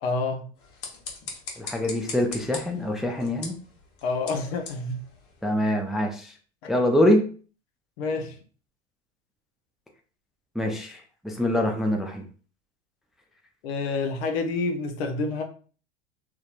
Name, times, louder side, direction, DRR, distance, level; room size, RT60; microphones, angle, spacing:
voice 1, 0.0-0.5 4.0-5.0 6.6-6.7 8.0-8.4 13.6-15.4, left 3 dB, 70° left, 0.7 m, -28 dB
sound 1, 0.5-5.8, left 4 dB, 45° left, 1.0 m, -41 dB
voice 2, 1.6-3.6 5.4-6.3 6.7-7.2 10.6-12.2, left 1 dB, ahead, 0.4 m, -24 dB
2.8 x 2.1 x 2.4 m
hypercardioid pair, 90°, 33 cm